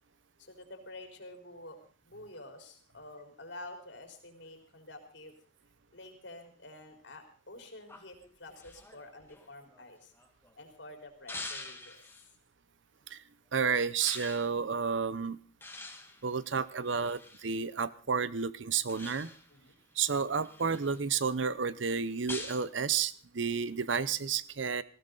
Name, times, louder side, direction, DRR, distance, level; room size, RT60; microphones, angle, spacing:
voice 1, 0.4-1.8 2.0-5.3 5.9-10.1 10.5-12.0 16.3-17.0 19.5-19.8, left 2 dB, 70° left, 4 dB, 4.0 m, -49 dB
sound 1, 7.9-10.5 11.3-12.3 14.0-14.5 15.6-17.5 18.9-19.6 20.1-21.0 22.3-22.7, left 2 dB, 10° left, 1.9 m, -45 dB
voice 2, 13.5-15.4 16.2-19.3 20.0-24.8, right 6 dB, 75° right, 16 dB, 0.7 m, -31 dB
19.5 x 16.0 x 4.0 m, 0.39 s
head